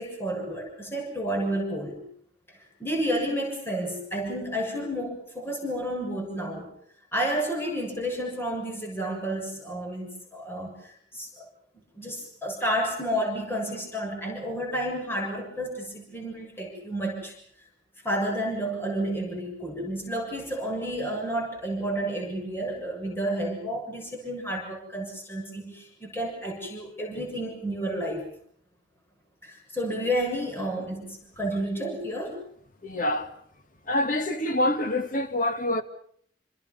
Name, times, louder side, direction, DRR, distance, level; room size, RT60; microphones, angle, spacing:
voice 1, 0.0-2.0 2.5-6.7 7.1-11.5 11.9-17.3 18.0-28.3 29.4-32.4, right 1 dB, 15° left, 7.0 m, -31 dB
voice 2, 32.8-33.3 33.9-35.8, left 1 dB, 50° left, 2.0 m, -26 dB
28.0 x 27.5 x 5.6 m
head